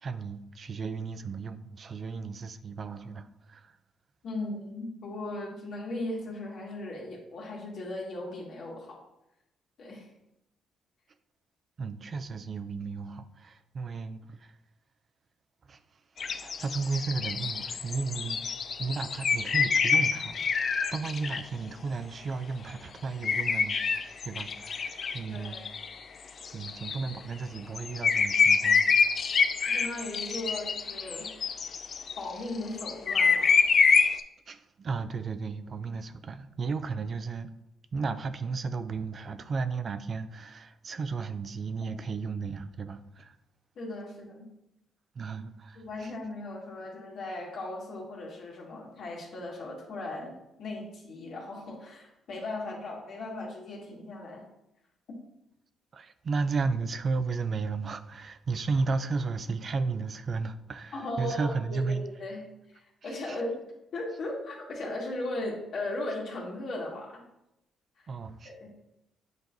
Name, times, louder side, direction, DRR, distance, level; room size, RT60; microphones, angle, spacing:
voice 1, 0.0-3.8 11.8-14.5 15.7-15.8 16.3-23.8 24.2-25.6 26.5-28.9 34.0-34.2 34.5-37.5 37.9-43.4 45.2-46.1 55.9-62.0 63.0-63.4 68.1-68.5, right 4 dB, 45° right, 0.4 m, -34 dB
voice 2, 4.2-9.0 9.8-10.1 25.3-25.7 29.7-31.3 32.2-33.6 43.8-44.5 45.8-50.3 50.6-54.4 60.9-62.5 63.0-63.6 63.9-67.2 68.0-68.1 68.4-68.8, left 2 dB, 70° left, 1.8 m, -37 dB
sound 1, 16.2-21.4 23.2-25.9 26.3-27.1 27.6-32.2 32.7-34.2, left 5 dB, 50° left, 0.4 m, -26 dB
7.8 x 4.5 x 2.7 m
cardioid pair, 90°, 0 cm